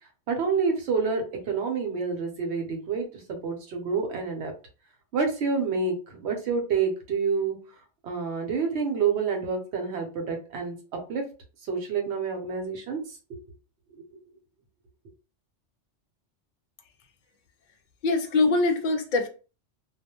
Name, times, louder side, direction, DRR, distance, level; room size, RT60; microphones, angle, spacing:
voice 1, 0.3-4.5 5.1-7.6 8.0-10.7 11.1-11.2 11.7-13.2, right 5 dB, 65° right, 0.9 m, -28 dB
voice 2, 18.0-19.3, left 3 dB, 60° left, 0.5 m, -23 dB
2.3 x 2.1 x 2.8 m
omnidirectional pair, 1.2 m